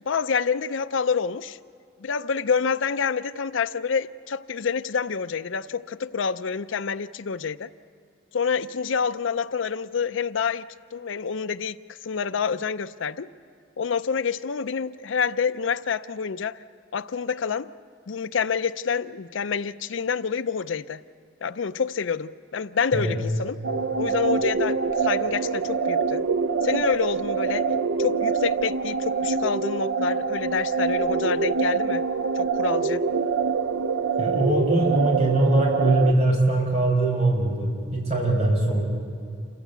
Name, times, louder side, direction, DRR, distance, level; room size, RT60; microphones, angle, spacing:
voice 1, 0.1-1.6 2.0-7.7 8.3-13.3 13.8-16.6 16.9-17.7 18.1-21.0 21.4-23.6 24.0-26.2 26.6-27.7 28.0-32.0 32.4-33.0, left 6 dB, 80° left, 14 dB, 0.5 m, -27 dB
sound 1, 23.6-36.1, right 5 dB, 90° right, 0.6 m, -25 dB
voice 2, 34.2-38.8, right 1 dB, 35° right, 0 dB, 5.1 m, -22 dB
28.0 x 15.5 x 8.2 m, 2.5 s
head